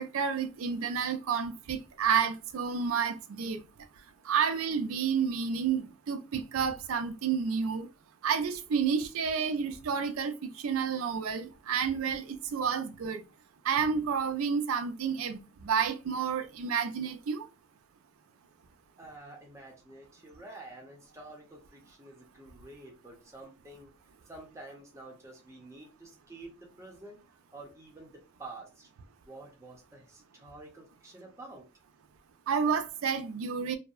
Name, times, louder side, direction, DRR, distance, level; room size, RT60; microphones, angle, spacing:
voice 1, 0.0-3.6 4.2-7.9 8.2-13.2 13.6-17.5 32.5-33.8, right 6 dB, 90° right, 0.4 m, -30 dB
voice 2, 19.0-27.2 27.5-28.9 29.2-31.7, right 2 dB, 15° right, 0.6 m, -49 dB
2.6 x 2.0 x 2.3 m
head